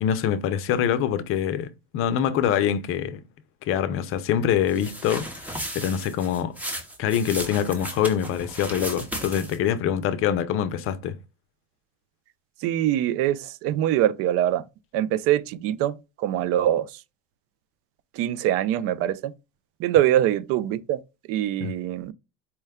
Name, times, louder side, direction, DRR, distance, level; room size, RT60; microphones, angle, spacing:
voice 1, 0.0-3.2 3.7-6.5 7.0-11.2 21.6-21.7, left 9 dB, 45° left, 0.6 m, -25 dB
sound 1, 4.7-9.7, equal, 5° right, 0.7 m, -35 dB
voice 2, 12.6-14.6 14.9-17.0 18.1-19.3 19.8-21.0 21.3-22.1, right 12 dB, 50° right, 0.4 m, -23 dB
4.4 x 2.1 x 3.5 m
supercardioid pair, 120°, 30 cm